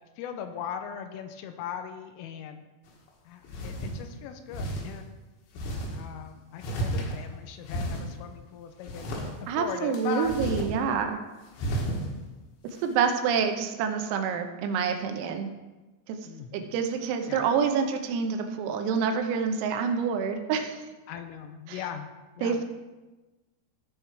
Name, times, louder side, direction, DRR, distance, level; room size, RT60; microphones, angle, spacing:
voice 1, 0.2-2.6 3.2-5.1 5.9-10.3 11.1-11.3 16.2-16.8 17.3-17.5 21.1-22.1 22.4-22.6, left 8 dB, 85° left, 7 dB, 3.2 m, -39 dB
sound 1, 2.9-3.0 3.4-4.0 4.5-4.8 5.5-5.9 6.6-7.3 7.6-8.1 8.8-9.3 9.9-10.7 11.0-11.1 11.5-12.0, right 1 dB, 70° left, 3.5 m, -32 dB
voice 2, 9.5-11.2 12.8-15.5 16.1-16.2 16.5-20.9 21.7-21.8 22.4-22.6, right 6 dB, 85° right, 5 dB, 3.6 m, -27 dB
14.5 x 5.7 x 4.6 m, 1.2 s
omnidirectional pair, 6.0 m